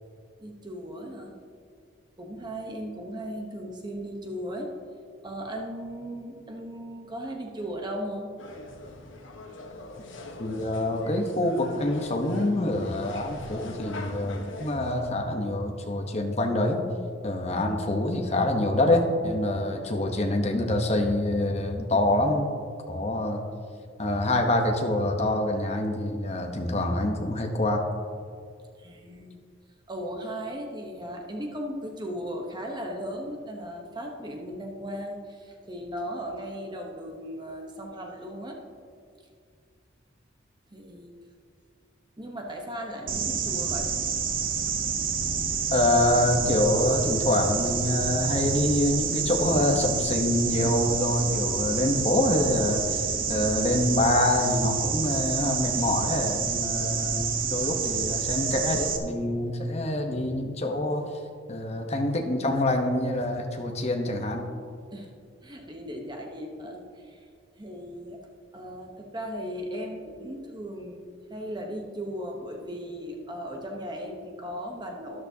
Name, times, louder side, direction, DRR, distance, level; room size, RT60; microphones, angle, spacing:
voice 1, 0.4-1.4 2.2-4.7 5.2-8.3 28.8-29.4 29.9-38.6 40.7-41.1 42.2-43.9 64.9-65.1 65.4-67.2 67.6-68.2 68.5-75.2, equal, 25° right, 1 dB, 1.0 m, -37 dB
sound 1, 8.4-15.1, left 2 dB, 75° left, 1.2 m, -42 dB
voice 2, 10.4-16.8 17.2-22.5 22.9-23.4 24.0-27.8 45.7-53.0 53.3-61.1 61.5-64.4, left 1 dB, 35° left, 3 dB, 1.0 m, -26 dB
sound 2, 43.1-59.0, right 6 dB, 45° right, 0.8 m, -28 dB
12.5 x 11.0 x 2.8 m, 2.2 s
head